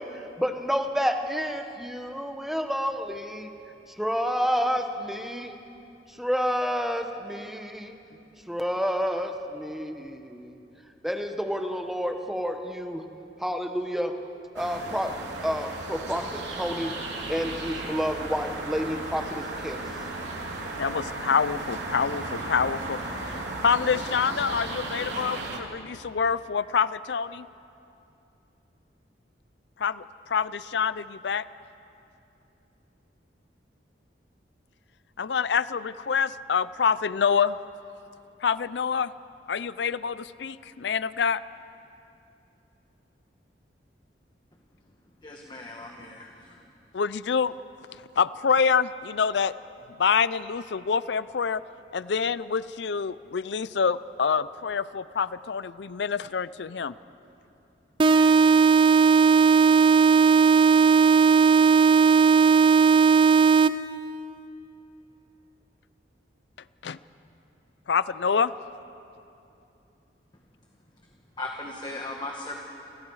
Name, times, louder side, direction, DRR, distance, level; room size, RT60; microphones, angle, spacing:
voice 1, 0.0-3.5 3.9-5.5 6.1-8.0 8.5-10.6 11.0-13.0 13.4-14.1 14.5-15.1 15.4-16.9 17.3-19.9, equal, ahead, 5 dB, 1.2 m, -29 dB
sound 1, 14.6-25.6, right 2 dB, 85° right, 3.1 m, -35 dB
voice 2, 20.8-27.5 29.8-31.4 35.2-37.6 38.4-39.1 39.5-41.4 46.9-47.6 48.2-49.5 50.0-51.6 51.9-56.9 66.8-67.0 67.9-68.5, left 6 dB, 75° left, 17 dB, 0.5 m, -26 dB
voice 3, 45.2-46.6 71.4-72.6, left 2 dB, 25° left, 1 dB, 1.4 m, -37 dB
sound 2, 58.0-64.0, right 5 dB, 30° right, 0.4 m, -17 dB
29.5 x 24.5 x 4.8 m, 2.8 s
head